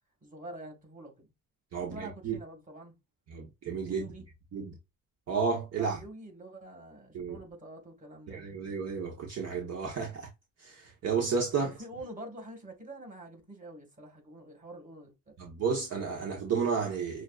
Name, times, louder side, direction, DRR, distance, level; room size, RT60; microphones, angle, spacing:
voice 1, 0.2-1.3 1.9-2.9 3.9-4.3 5.8-8.4 11.6-15.3, right 1 dB, 25° right, 2.0 m, -46 dB
voice 2, 1.7-2.4 3.3-4.1 4.5-4.8 5.3-6.0 7.1-7.4 8.3-10.3 10.6-11.7 15.4-17.2, right 5 dB, 55° right, 1.1 m, -32 dB
6.1 x 2.6 x 2.4 m
cardioid pair, 90°, 30 cm